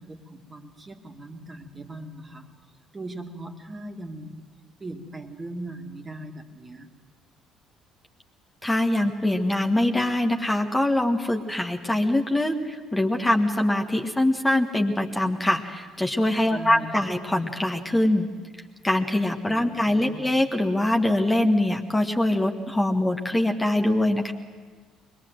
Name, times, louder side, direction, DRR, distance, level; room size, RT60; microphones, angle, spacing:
voice 1, 0.0-2.5 2.9-4.4 4.8-6.9 16.5-17.2 19.5-20.3, right 1 dB, 25° right, 3 dB, 2.2 m, -39 dB
voice 2, 8.6-18.3 18.8-24.3, left 1 dB, 15° left, 3 dB, 1.6 m, -23 dB
23.0 x 21.5 x 7.7 m, 1.5 s
figure-of-eight pair, 50°, 0 cm